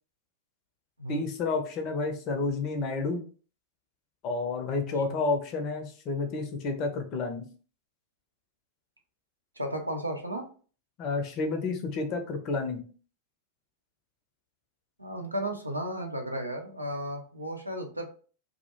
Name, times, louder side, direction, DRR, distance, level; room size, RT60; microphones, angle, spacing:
voice 1, 1.1-3.2 4.2-7.4 11.0-12.8, left 3 dB, 40° left, 4 dB, 0.5 m, -30 dB
voice 2, 4.8-5.2 9.6-10.4 15.0-18.1, right 1 dB, 85° right, 3 dB, 0.5 m, -34 dB
2.2 x 2.1 x 2.9 m, 0.40 s
figure-of-eight pair, 90°, 0 cm